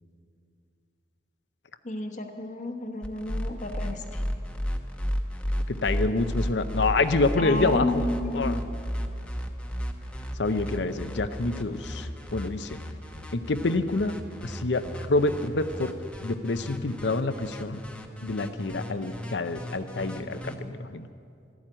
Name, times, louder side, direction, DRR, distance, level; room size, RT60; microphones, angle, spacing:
voice 1, 1.8-4.2 7.4-8.6, left 1 dB, 40° left, 4 dB, 1.1 m, -31 dB
sound 1, 3.0-20.6, equal, 5° left, 0.9 m, -33 dB
voice 2, 5.7-8.0 8.3-8.6 10.4-12.8 13.3-14.1 14.4-15.9 16.2-17.8 18.2-21.1, left 3 dB, 70° left, 10 dB, 0.7 m, -27 dB
12.5 x 12.0 x 8.9 m, 2.4 s
head